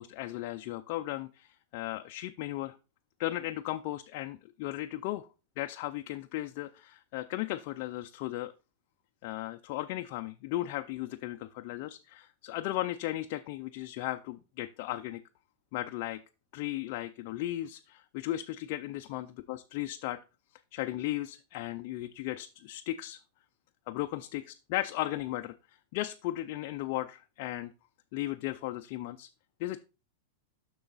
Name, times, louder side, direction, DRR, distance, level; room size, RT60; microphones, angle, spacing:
voice 1, 0.0-2.8 3.2-5.3 5.6-8.5 9.2-15.2 15.7-16.2 16.5-20.2 20.7-23.2 23.9-27.7 28.1-29.3 29.6-29.8, left 15 dB, 45° left, 6 dB, 0.4 m, -36 dB
6.9 x 6.2 x 4.0 m, 0.30 s
supercardioid pair, 155°, 0 cm